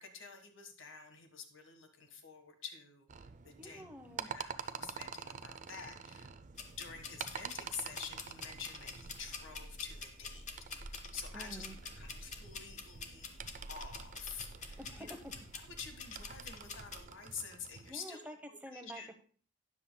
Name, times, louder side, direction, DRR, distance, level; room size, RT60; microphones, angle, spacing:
voice 1, 0.0-3.8 4.2-6.3 6.8-10.4 10.7-11.7 12.0-13.3 13.7-15.2 15.5-19.1, left 6 dB, 80° left, 6 dB, 1.5 m, -48 dB
sound 1, 3.1-17.9, right 6 dB, 40° right, 0.4 m, -48 dB
voice 2, 3.6-4.3 11.3-11.8 14.8-15.1 17.9-18.3 18.6-19.2, equal, 10° right, 4 dB, 0.9 m, -48 dB
sound 2, 6.5-17.0, left 4 dB, 35° left, 0.9 m, -48 dB
12.5 x 9.8 x 2.2 m, 0.43 s
head